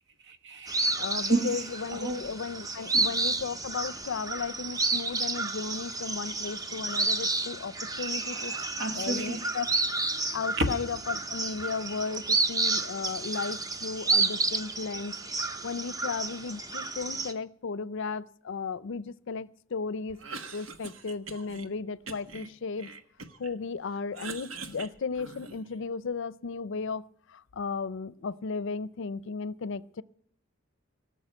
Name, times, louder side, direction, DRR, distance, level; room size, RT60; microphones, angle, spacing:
voice 1, 0.3-1.6 1.9-2.2 2.9-3.1 8.2-9.5 10.6-10.7, right 2 dB, 60° right, 1.3 m, -32 dB
sound 1, 0.7-17.3, right 3 dB, 20° right, 0.7 m, -31 dB
voice 2, 1.0-8.5 8.9-9.7 10.3-15.1 15.6-20.2 20.5-22.9 23.4-27.0 27.3-30.0, left 5 dB, 65° left, 0.5 m, -35 dB
Cough, 20.1-21.7 22.1-23.5 23.9-25.8, right 4 dB, 85° right, 1.2 m, -43 dB
18.5 x 6.4 x 8.9 m
head